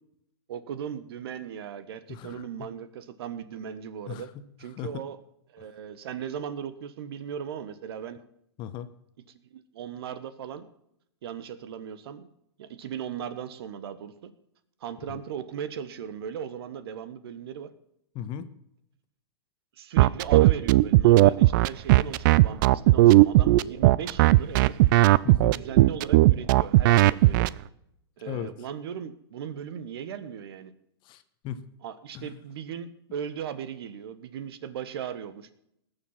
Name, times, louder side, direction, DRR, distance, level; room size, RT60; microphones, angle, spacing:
voice 1, 0.5-4.3 4.6-5.2 5.5-8.2 9.5-10.7 11.2-12.3 12.6-14.3 14.8-17.7 19.8-24.8 25.5-27.5 28.2-30.7 31.8-35.5, right 8 dB, 65° right, 14 dB, 1.3 m, -37 dB
voice 2, 2.1-2.4 4.1-4.4 4.7-5.0 8.6-8.9 15.1-15.2 18.1-18.5 25.2-25.6 28.3-28.5 31.0-31.6 32.1-32.4, left 9 dB, 35° left, 12 dB, 1.1 m, -37 dB
sound 1, 20.0-27.5, right 17 dB, 45° right, 0.5 m, -17 dB
19.0 x 7.1 x 5.7 m, 0.77 s
hypercardioid pair, 120°, 14 cm